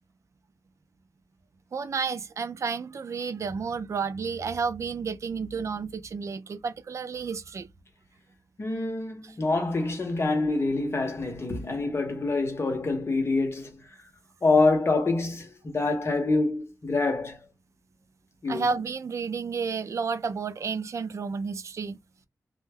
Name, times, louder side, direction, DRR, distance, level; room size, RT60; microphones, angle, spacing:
voice 1, 1.7-7.7 18.5-22.0, right 5 dB, 50° right, 0.3 m, -31 dB
voice 2, 8.6-13.9 14.4-17.4 18.4-18.7, left 3 dB, 40° left, 0.8 m, -26 dB
2.2 x 2.0 x 3.3 m
wide cardioid pair, 140°, 7 cm